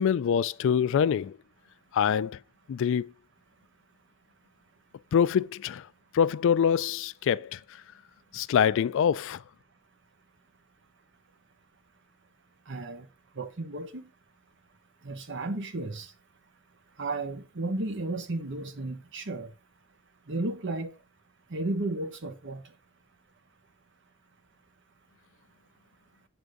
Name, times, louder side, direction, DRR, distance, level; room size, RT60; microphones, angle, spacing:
voice 1, 0.0-1.4 1.9-2.4 2.7-3.1 5.1-5.9 6.1-7.6 8.3-9.4, left 8 dB, 60° left, 0.3 m, -25 dB
voice 2, 12.7-13.1 13.4-14.0 15.0-16.1 17.0-19.5 20.3-20.9 21.5-22.6, right 2 dB, 60° right, 1.0 m, -33 dB
8.0 x 3.5 x 5.1 m
head